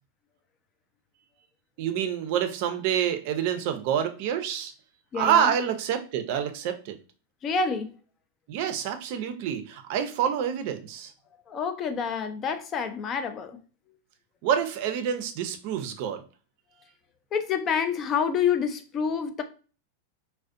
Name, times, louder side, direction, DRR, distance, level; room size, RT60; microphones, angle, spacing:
voice 1, 1.8-4.7 5.1-6.9 8.5-11.1 14.4-16.2, right 9 dB, 55° right, 0.4 m, -27 dB
voice 2, 5.1-5.5 7.4-7.9 11.5-13.6 17.3-19.4, left 6 dB, 30° left, 0.4 m, -27 dB
2.4 x 2.1 x 2.4 m
hypercardioid pair, 120°, 0 cm